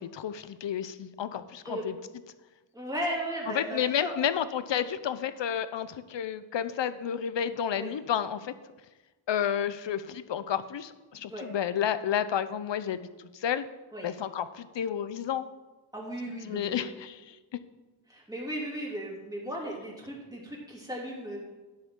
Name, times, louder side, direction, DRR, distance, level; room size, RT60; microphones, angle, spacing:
voice 1, 0.0-2.0 3.5-8.5 9.3-13.7 14.0-15.5 16.4-17.4, left 9 dB, 65° left, 13 dB, 0.7 m, -31 dB
voice 2, 2.7-4.1 7.8-7.9 11.1-11.5 13.9-14.1 15.9-16.9 18.1-21.4, right 1 dB, 10° right, -4 dB, 3.0 m, -36 dB
12.5 x 9.7 x 3.8 m, 1.2 s
wide cardioid pair, 145°, 46 cm